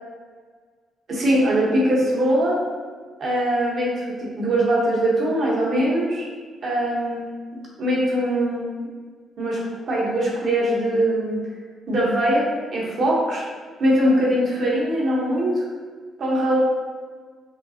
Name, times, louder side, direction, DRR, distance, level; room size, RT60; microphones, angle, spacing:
voice 1, 1.1-2.6 3.2-6.2 6.6-7.3 7.8-8.7 9.4-9.6 9.9-11.4 11.9-12.5 12.7-13.4 13.8-15.6 16.2-16.6, right 1 dB, 55° right, -5 dB, 1.3 m, -21 dB
5.4 x 2.3 x 2.9 m, 1.6 s
cardioid pair, 90°, 0 cm